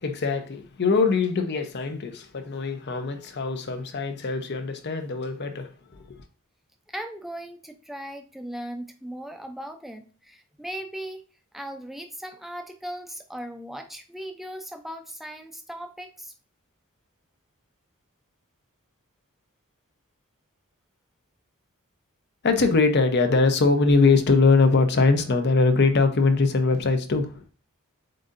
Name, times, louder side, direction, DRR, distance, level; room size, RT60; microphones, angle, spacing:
voice 1, 0.0-5.7 22.4-27.4, left 3 dB, 50° left, 0.6 m, -22 dB
voice 2, 6.9-11.2 11.5-16.3, right 1 dB, ahead, 0.5 m, -38 dB
7.5 x 2.6 x 2.5 m
head